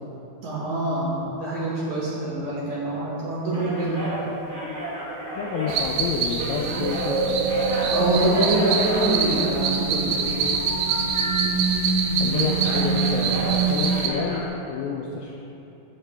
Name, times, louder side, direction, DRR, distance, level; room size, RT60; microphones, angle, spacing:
voice 1, 0.4-4.1 7.9-10.6, right 1 dB, 60° right, -6 dB, 2.1 m, -25 dB
sound 1, 3.5-7.1 7.4-9.9 10.6-11.9 12.3-14.5, equal, 30° right, 2.2 m, -32 dB
voice 2, 5.4-7.4 12.2-14.4 14.7-15.3, left 5 dB, 85° left, 0 dB, 2.0 m, -29 dB
sound 2, 5.7-14.1, right 5 dB, 85° right, 1.9 m, -24 dB
15.5 x 5.8 x 3.4 m, 2.9 s
omnidirectional pair, 4.6 m